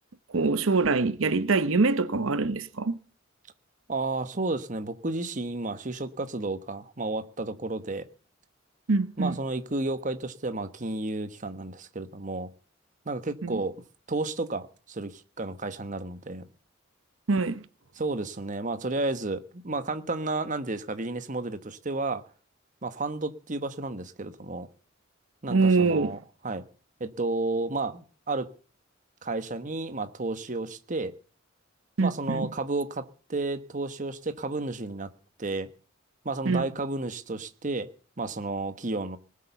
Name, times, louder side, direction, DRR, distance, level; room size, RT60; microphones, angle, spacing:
voice 1, 0.3-3.0 8.9-9.4 13.4-13.6 17.3-17.6 25.5-26.1 32.0-32.5 36.5-36.7, right 3 dB, 80° right, 0.8 m, -24 dB
voice 2, 3.9-8.1 9.2-12.5 13.0-13.8 14.1-16.4 17.9-22.2 22.8-24.7 25.4-26.6 27.0-28.5 29.2-31.1 32.0-35.1 35.4-35.7 36.2-37.9 38.2-39.2, right 2 dB, 40° right, 1.1 m, -32 dB
19.5 x 8.6 x 6.9 m
head